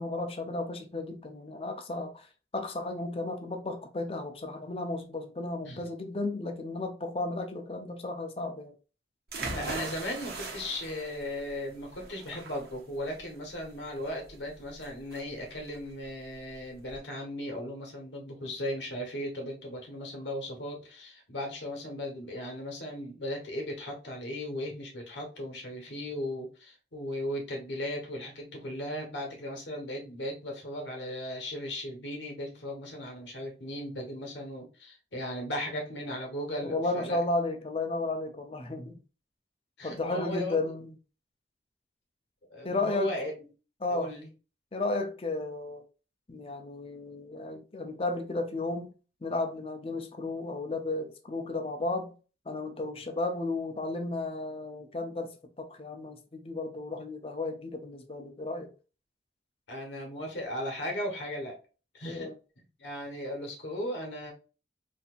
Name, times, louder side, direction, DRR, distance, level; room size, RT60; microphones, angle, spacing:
voice 1, 0.0-8.7 36.6-39.0 39.8-40.9 42.6-43.2 43.8-44.1 44.7-45.8 46.3-48.9 49.2-52.1 52.5-58.7 62.0-62.3, left 2 dB, 30° left, 0.5 m, -33 dB
sound 1, 9.3-17.0, right 3 dB, 55° right, 1.0 m, -41 dB
voice 2, 9.5-37.2 39.8-40.6 42.5-43.3 43.9-44.3 59.7-61.5 61.9-62.3 62.8-64.3, left 1 dB, 80° left, 1.4 m, -37 dB
4.1 x 2.7 x 2.5 m
head